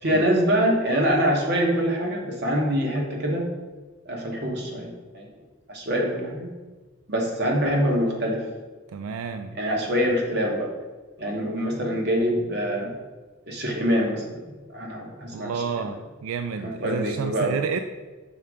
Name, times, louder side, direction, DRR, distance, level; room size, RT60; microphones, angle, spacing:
voice 1, 0.0-3.5 4.1-5.3 5.7-6.5 7.1-8.4 9.6-10.7 11.2-12.9 13.5-15.5 15.8-15.9 16.6-17.6, equal, 50° right, 0 dB, 1.1 m, -25 dB
voice 2, 8.9-9.6 15.3-17.8, right 6 dB, 90° right, 8 dB, 0.3 m, -30 dB
5.7 x 3.5 x 4.9 m, 1.3 s
head